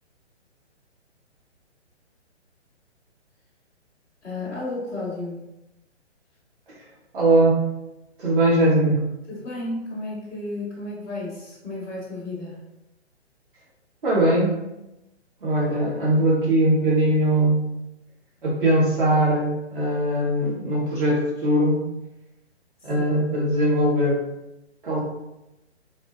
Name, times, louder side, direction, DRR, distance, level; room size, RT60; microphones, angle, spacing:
voice 1, 4.2-5.4 9.3-12.6, left 2 dB, 5° left, -12 dB, 0.6 m, -32 dB
voice 2, 7.1-7.6 8.2-9.0 14.0-14.5 15.4-17.7 18.4-21.8 22.8-24.2 24.8-25.0, right 1 dB, 50° right, -5 dB, 1.2 m, -20 dB
3.5 x 2.0 x 2.5 m, 0.93 s
figure-of-eight pair, 130°, 35 cm